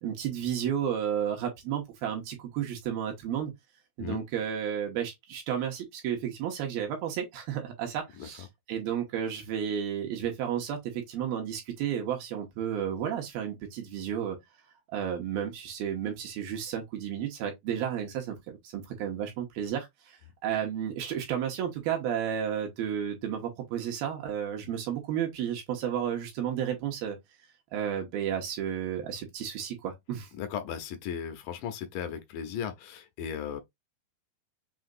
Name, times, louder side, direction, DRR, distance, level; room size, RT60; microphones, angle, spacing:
voice 1, 0.0-3.5 4.0-14.4 14.9-20.2 20.4-27.2 27.7-30.3, right 9 dB, 80° right, 2.9 m, -32 dB
voice 2, 30.4-33.6, left 8 dB, 75° left, 2.0 m, -36 dB
6.3 x 2.8 x 2.5 m
omnidirectional pair, 4.4 m